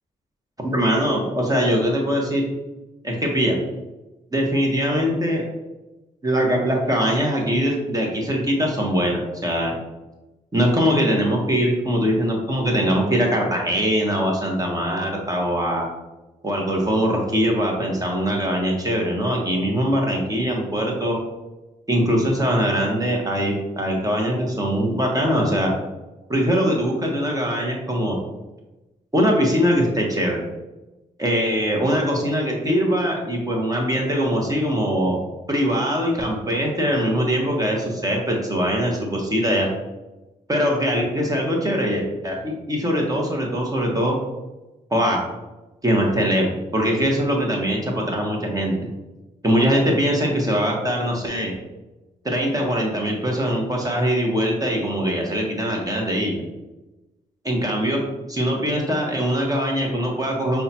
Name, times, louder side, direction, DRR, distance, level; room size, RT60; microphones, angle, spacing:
voice 1, 0.6-2.5 3.0-3.6 4.3-5.4 6.2-9.7 10.5-15.9 16.4-21.2 21.9-25.7 26.3-28.2 29.1-30.4 31.2-35.2 35.5-39.7 40.5-44.2 44.9-45.2 45.8-48.7 49.4-51.5 52.2-56.4 57.4-58.0 58.3-60.6, equal, 20° right, -1 dB, 1.0 m, -22 dB
5.3 x 2.3 x 2.9 m, 1.1 s
supercardioid pair, 50°, 16 cm